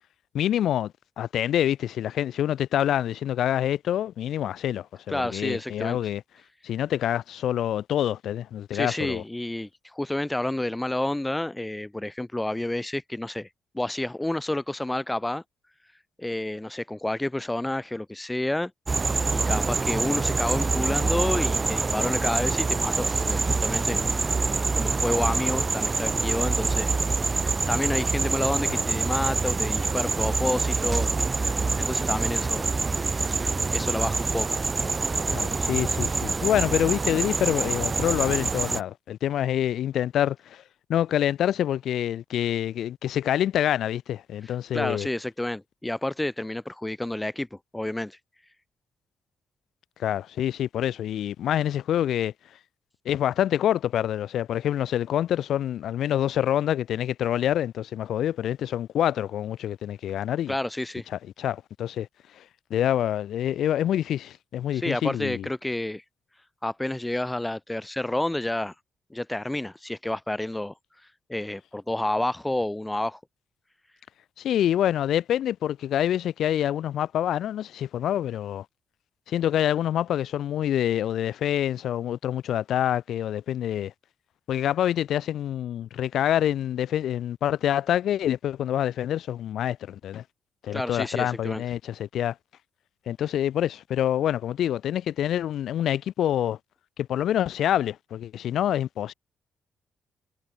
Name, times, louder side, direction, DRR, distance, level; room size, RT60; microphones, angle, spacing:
voice 1, 0.3-6.2 6.6-9.2 28.7-28.8 35.3-40.6 40.9-45.1 50.0-52.3 53.1-60.5 61.4-62.1 62.3-62.4 62.7-65.5 74.4-78.7 79.3-83.9 84.5-90.2 90.6-92.4 93.1-96.6 97.0-99.1, left 11 dB, 70° left, 1.9 m, -26 dB
voice 2, 5.1-6.0 8.7-13.5 13.7-15.4 16.2-18.7 19.0-24.2 24.7-27.0 27.3-31.1 31.4-32.7 33.7-34.6 44.4-48.2 60.5-61.1 64.7-66.0 66.6-68.7 69.1-73.2 90.7-91.6, left 1 dB, 10° left, 3.4 m, -30 dB
sound 1, 18.9-38.8, right 4 dB, 30° right, 1.2 m, -26 dB
cardioid pair, 90°, 0 cm